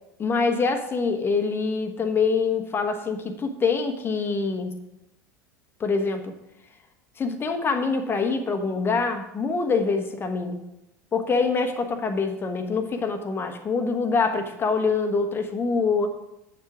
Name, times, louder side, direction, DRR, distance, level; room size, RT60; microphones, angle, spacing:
voice 1, 0.2-4.8 5.8-6.4 7.2-10.6 11.1-16.1, left 4 dB, 25° left, 7 dB, 1.1 m, -25 dB
8.1 x 7.4 x 4.9 m, 0.88 s
figure-of-eight pair, 75°, 10 cm